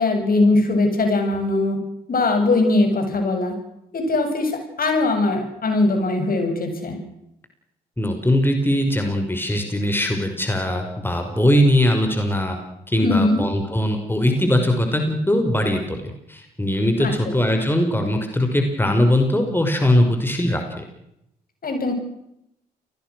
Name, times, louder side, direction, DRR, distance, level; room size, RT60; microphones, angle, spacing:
voice 1, 0.0-1.8 2.1-3.6 3.9-7.0 13.0-13.4 17.0-17.3 21.6-21.9, left 2 dB, 45° left, 5 dB, 7.8 m, -20 dB
voice 2, 8.0-12.6 12.9-20.8, left 1 dB, 10° left, 4 dB, 5.8 m, -20 dB
29.5 x 20.5 x 6.4 m, 0.80 s
hypercardioid pair, 45°, 20 cm